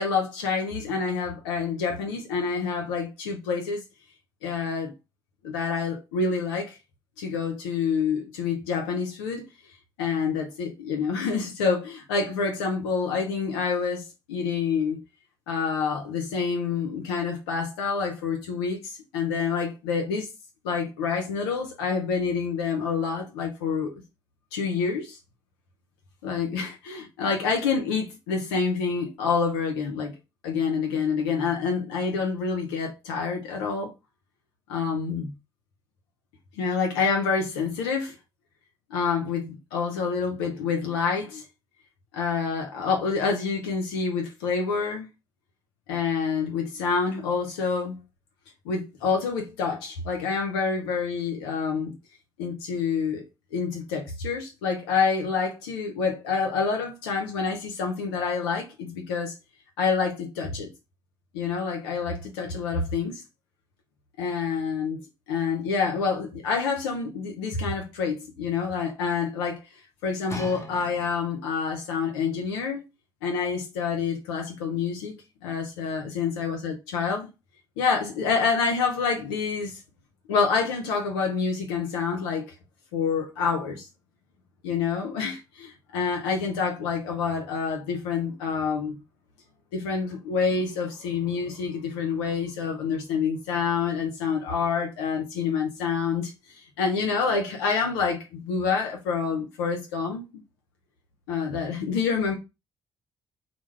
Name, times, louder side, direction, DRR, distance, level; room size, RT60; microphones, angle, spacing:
voice 1, 0.0-3.8 4.4-4.9 5.4-6.8 7.2-9.5 10.0-15.0 15.5-20.3 20.6-23.9 24.5-25.2 26.2-30.1 30.4-33.9 34.7-35.3 36.6-38.2 38.9-41.4 42.1-45.1 45.9-48.0 48.7-52.0 52.4-53.2 53.5-59.3 59.8-60.7 61.3-63.2 64.2-65.0 65.3-69.6 70.0-72.8 73.2-75.1 75.4-77.3 77.8-79.8 80.3-82.5 82.9-83.9 84.6-89.0 89.7-100.4 101.3-102.3, left 5 dB, 85° left, 0.4 m, -27 dB
sound 1, 70.3-71.6 72.3-72.4, left 1 dB, 20° left, 0.7 m, -39 dB
2.2 x 2.0 x 3.0 m
hypercardioid pair, 50°, 12 cm